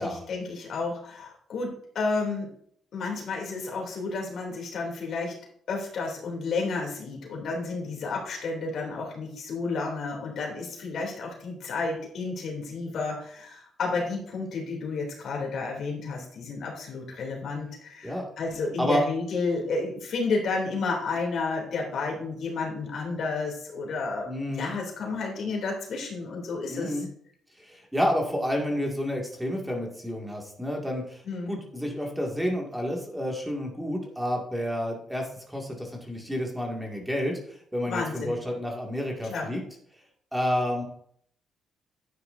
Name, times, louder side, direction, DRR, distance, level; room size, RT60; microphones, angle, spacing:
voice 1, 0.0-2.5 2.9-5.3 5.7-24.3 24.6-27.1 31.2-31.5 37.9-38.3 39.3-39.5, left 3 dB, 60° left, 0 dB, 2.9 m, -31 dB
voice 2, 24.3-24.7 26.7-27.1 27.6-31.2 31.5-39.6 40.3-40.8, equal, 5° right, 0 dB, 2.1 m, -30 dB
11.5 x 9.4 x 2.7 m, 0.64 s
cardioid pair, 110°, 0 cm